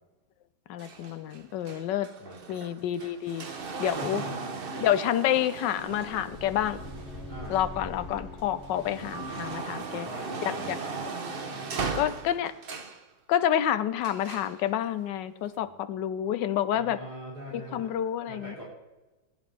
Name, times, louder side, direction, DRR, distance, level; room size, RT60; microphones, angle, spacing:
voice 1, 0.7-2.1 2.5-3.5 3.8-4.2 4.8-6.8 7.5-10.1 10.4-10.8 12.0-12.5 13.3-17.0 17.5-18.5, left 10 dB, 80° left, 13 dB, 1.3 m, -28 dB
sound 1, 0.8-8.0 8.5-13.0 14.0-14.6 15.5-15.6, right 4 dB, 45° right, 0.8 m, -38 dB
voice 2, 2.2-2.5 3.9-4.8 7.3-7.6 9.9-11.0 11.5-12.1 15.6-15.7 16.7-18.0 18.3-18.6, right 1 dB, 60° right, -6 dB, 3.8 m, -42 dB
sound 2, 5.8-10.4, left 1 dB, 60° left, 3.2 m, -44 dB
Piano, 9.1-11.3, right 4 dB, 80° right, 1.5 m, -47 dB
18.5 x 10.5 x 3.4 m, 1.1 s
omnidirectional pair, 1.9 m